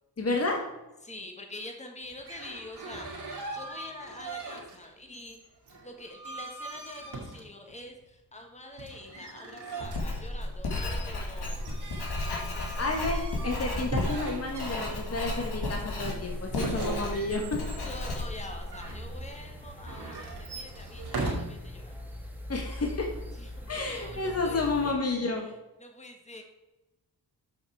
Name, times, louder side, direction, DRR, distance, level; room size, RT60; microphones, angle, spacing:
voice 1, 0.2-0.6 12.8-17.6 22.5-23.1 23.6-25.5, left 3 dB, 40° left, 1 dB, 1.5 m, -31 dB
voice 2, 1.0-5.4 5.8-11.7 17.8-22.0 23.3-25.0 25.8-26.4, left 2 dB, 15° left, 3 dB, 1.6 m, -45 dB
sound 1, 2.1-4.9 5.1-7.8 8.8-15.4 16.5-19.0 19.8-21.3, right 3 dB, 75° right, 2.4 m, -40 dB
Writing, 9.8-19.2, left 2 dB, 75° left, 2.0 m, -34 dB
sound 2, 11.5-24.9, left 1 dB, 5° right, 1.9 m, -44 dB
7.3 x 5.9 x 4.7 m, 1.0 s
cardioid pair, 60°, 39 cm